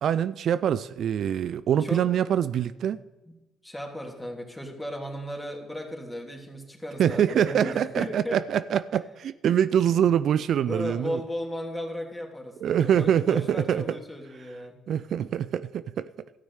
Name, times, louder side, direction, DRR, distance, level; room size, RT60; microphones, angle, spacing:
voice 1, 0.0-3.0 7.0-11.2 12.6-14.0 14.9-16.1, right 9 dB, 65° right, 0.3 m, -24 dB
voice 2, 1.8-2.1 3.6-8.4 10.6-14.7, equal, 10° left, 3.1 m, -35 dB
13.5 x 6.3 x 8.1 m
hypercardioid pair, 50°, 0 cm